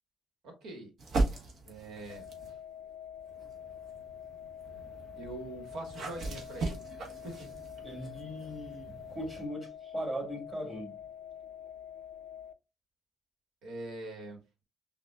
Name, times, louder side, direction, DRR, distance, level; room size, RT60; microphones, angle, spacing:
voice 1, 0.4-0.9 1.6-2.6 5.2-6.8 7.2-7.6 13.6-14.4, right 1 dB, 80° right, 1.5 m, -43 dB
sound 1, 1.0-2.6 3.2-9.5, right 2 dB, 60° right, 1.2 m, -38 dB
sound 2, 2.1-12.5, left 9 dB, 90° left, 0.3 m, -47 dB
voice 2, 7.8-11.0, equal, 20° right, 2.3 m, -39 dB
6.0 x 2.5 x 2.3 m
cardioid pair, 90°, 0 cm